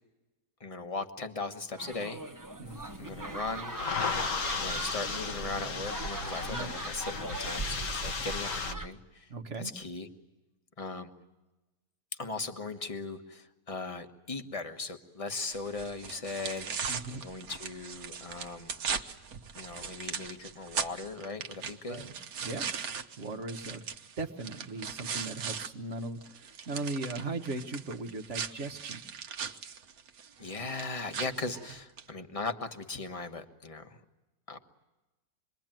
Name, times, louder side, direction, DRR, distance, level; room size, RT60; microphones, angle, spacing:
voice 1, 0.6-2.2 3.0-3.8 4.5-9.3 9.6-10.1 10.8-11.1 12.2-18.7 19.6-22.0 30.4-34.0 34.5-34.6, left 3 dB, 20° left, 7 dB, 1.4 m, -38 dB
sound 1, 1.8-8.9, right 2 dB, 15° right, 0.8 m, -40 dB
sound 2, 2.7-8.7, left 4 dB, 55° left, 1.5 m, -35 dB
voice 2, 9.3-9.7 16.9-17.2 21.9-22.2 22.4-22.7 23.2-23.8 24.2-29.0, right 2 dB, 45° right, 5 dB, 1.7 m, -38 dB
sound 3, 15.5-25.7 26.0-32.1, right 6 dB, 60° right, 1.5 m, -39 dB
27.0 x 22.5 x 9.1 m, 1.1 s
omnidirectional pair, 1.8 m